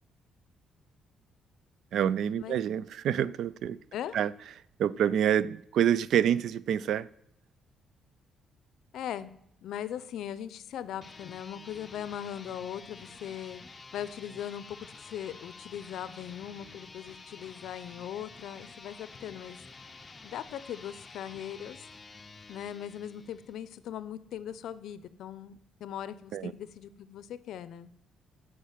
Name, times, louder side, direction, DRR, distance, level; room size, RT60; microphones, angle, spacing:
voice 1, 1.9-3.8 4.1-4.3 4.8-7.1 26.3-26.5, right 9 dB, 70° right, 0.3 m, -27 dB
voice 2, 8.9-9.3 9.6-13.6 13.9-19.6 20.2-21.9 22.5-27.9, left 10 dB, 75° left, 0.5 m, -39 dB
sound 1, 10.9-23.7, left 3 dB, 25° left, 0.6 m, -50 dB
8.3 x 4.7 x 7.2 m
cardioid pair, 95°, 0 cm